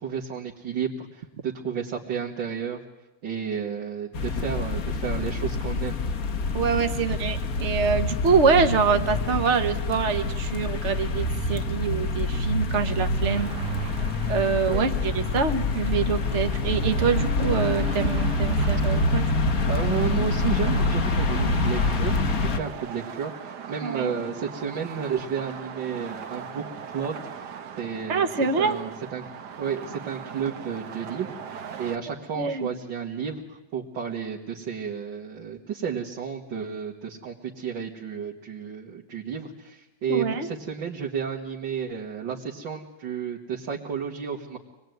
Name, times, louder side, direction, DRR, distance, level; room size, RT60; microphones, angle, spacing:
voice 1, 0.0-2.8 3.2-6.0 8.9-9.1 14.7-14.8 19.7-26.7 26.9-27.2 27.8-28.3 28.6-29.2 29.6-44.6, right 7 dB, 80° right, -3 dB, 2.5 m, -32 dB
sound 1, 4.1-22.6, left 2 dB, 50° left, 1.5 m, -26 dB
voice 2, 6.5-13.5 14.3-19.2 23.8-24.1 28.1-28.8 32.4-32.7 40.1-40.5, right 5 dB, 40° right, 8 dB, 1.5 m, -25 dB
sound 2, 13.3-32.0, right 7 dB, 65° right, 1.7 m, -40 dB
25.5 x 20.5 x 9.4 m, 1.0 s
omnidirectional pair, 2.0 m